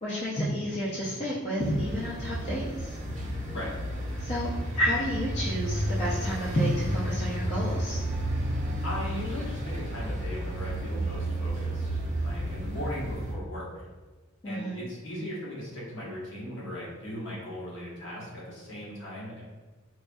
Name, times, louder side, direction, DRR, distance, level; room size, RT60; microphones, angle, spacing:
voice 1, 0.0-3.0 4.2-4.5 4.8-8.0 14.4-14.8, equal, 30° left, -8 dB, 0.5 m, -30 dB
sound 1, 1.6-13.3, right 1 dB, 35° right, 0.5 m, -32 dB
voice 2, 8.8-13.7 14.4-19.4, left 1 dB, 60° left, -6 dB, 1.1 m, -38 dB
4.2 x 2.6 x 2.2 m, 1.3 s
head